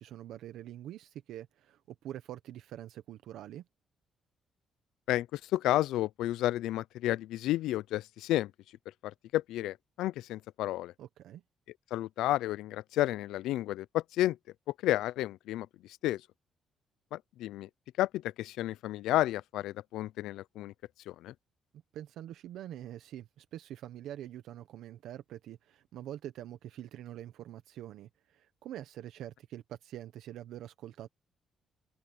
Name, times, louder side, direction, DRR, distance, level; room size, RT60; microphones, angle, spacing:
voice 1, 0.0-3.7 11.0-11.4 21.9-31.1, right 12 dB, 80° right, 1.0 m, -45 dB
voice 2, 5.1-8.5 9.0-10.9 11.9-14.4 14.8-15.7 16.0-16.2 17.1-17.7 18.0-20.7 21.1-21.3, left 15 dB, 90° left, 0.4 m, -31 dB
cardioid pair, 90°, 0 cm